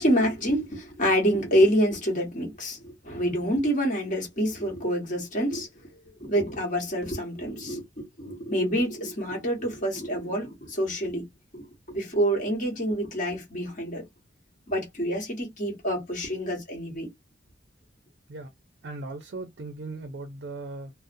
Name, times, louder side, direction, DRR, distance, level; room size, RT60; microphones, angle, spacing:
voice 1, 0.0-5.7 6.2-11.3 11.5-14.0 14.7-17.1, equal, 45° left, 1.2 m, -27 dB
voice 2, 18.8-20.9, right 3 dB, 60° right, 0.4 m, -38 dB
2.5 x 2.0 x 2.5 m
head